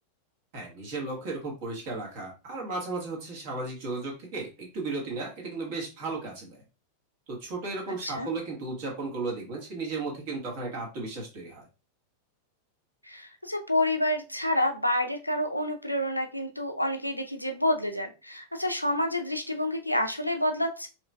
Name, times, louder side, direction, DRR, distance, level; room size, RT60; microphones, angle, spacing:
voice 1, 0.5-6.6 7.3-11.6, right 3 dB, 50° right, 0 dB, 1.6 m, -35 dB
voice 2, 13.0-20.9, left 1 dB, 90° left, 5 dB, 0.5 m, -28 dB
4.7 x 3.1 x 2.3 m, 0.31 s
figure-of-eight pair, 90°, 0 cm